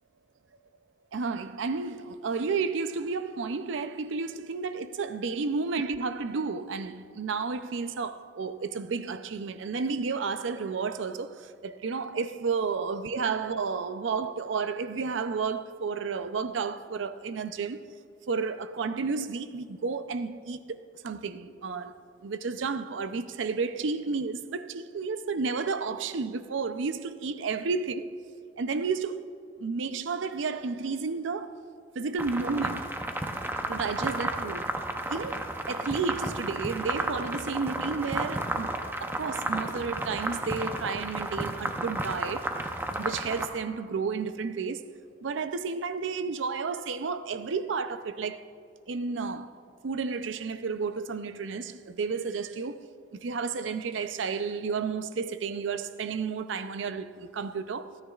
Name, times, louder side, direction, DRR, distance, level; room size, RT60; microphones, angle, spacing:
voice 1, 1.1-17.9 18.3-20.8 21.0-21.9 22.2-28.1 28.6-29.2 29.6-31.6 31.9-32.9 33.7-34.7 35.1-38.7 39.0-42.6 43.0-44.9 45.2-48.5 48.9-49.6 49.8-52.8 53.2-58.0, right 4 dB, 75° right, 0.5 m, -32 dB
sound 1, 32.2-43.5, right 1 dB, 10° right, 0.6 m, -32 dB
27.0 x 9.8 x 2.4 m
head